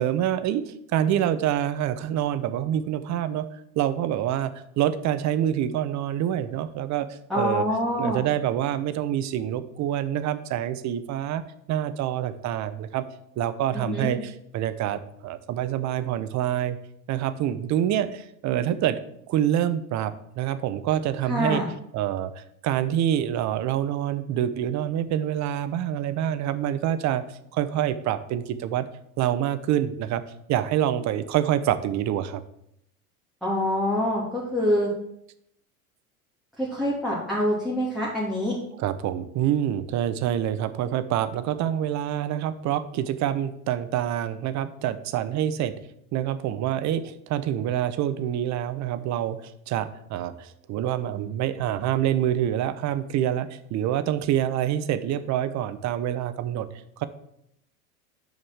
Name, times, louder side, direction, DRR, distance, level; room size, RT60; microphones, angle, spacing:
voice 1, 0.0-3.5 3.8-7.1 7.3-7.6 8.0-11.4 11.7-13.1 13.4-16.8 17.1-19.0 19.3-21.6 21.9-28.9 29.2-30.2 30.5-32.4 38.8-45.7 46.1-56.7 57.0-57.1, right 11 dB, 40° right, 12 dB, 0.9 m, -26 dB
voice 2, 7.3-8.2 13.7-14.1 21.2-21.7 33.4-34.9 36.6-38.5, left 1 dB, ahead, -6 dB, 2.7 m, -25 dB
7.2 x 5.3 x 7.3 m, 0.76 s
hypercardioid pair, 85°, 44 cm